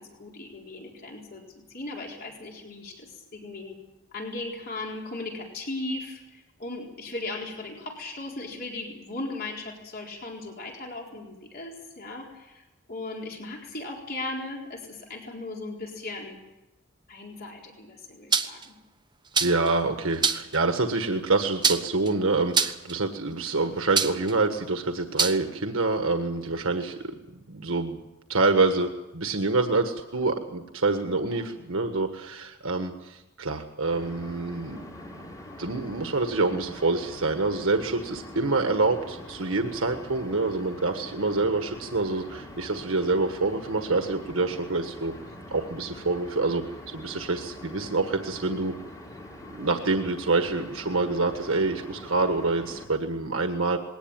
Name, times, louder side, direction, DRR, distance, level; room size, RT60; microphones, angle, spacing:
voice 1, 0.0-1.4 1.7-3.8 4.1-12.6 12.9-16.4 17.1-18.8 31.2-31.5, left 2 dB, 50° left, -1 dB, 4.2 m, -37 dB
sound 1, 18.3-18.7 19.3-19.7 20.2-20.6 21.6-22.1 22.5-22.9 24.0-24.3 25.2-25.4, right 6 dB, 20° right, 1.1 m, -24 dB
voice 2, 19.4-26.9 27.5-28.0 28.3-28.9 29.1-35.3 35.6-45.1 45.5-46.6 46.9-48.7 49.5-53.8, right 3 dB, 80° right, 6 dB, 1.6 m, -26 dB
sound 2, 33.9-52.9, left 1 dB, 20° left, 3.9 m, -44 dB
21.0 x 18.5 x 9.0 m, 1.0 s
head